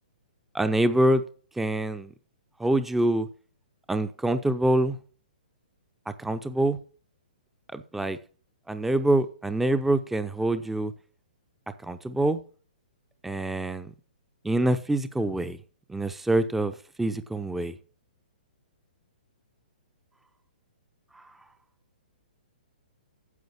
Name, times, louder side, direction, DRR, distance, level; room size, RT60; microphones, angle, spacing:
voice 1, 0.5-1.2 1.6-2.1 2.6-3.3 3.9-5.0 6.1-6.8 7.7-8.2 8.7-10.9 11.8-12.4 13.2-13.9 14.4-15.6 15.9-17.7, right 1 dB, 5° right, 0.6 m, -25 dB
9.5 x 7.7 x 6.9 m
hypercardioid pair, 130°, 5 cm